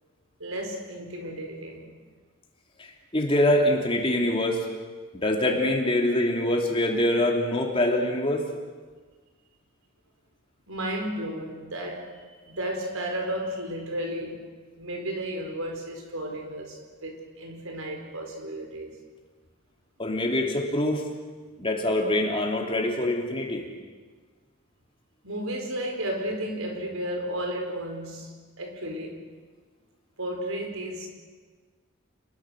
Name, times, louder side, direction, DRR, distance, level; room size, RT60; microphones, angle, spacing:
voice 1, 0.4-1.9 10.7-12.2 12.5-14.4 14.8-19.0 25.2-29.2 30.2-31.1, right 1 dB, 80° right, 3 dB, 4.7 m, -33 dB
voice 2, 2.8-4.6 5.2-8.4 20.0-21.0 21.6-23.6, left 1 dB, 25° left, 1 dB, 3.0 m, -24 dB
28.5 x 21.5 x 6.4 m, 1.4 s
head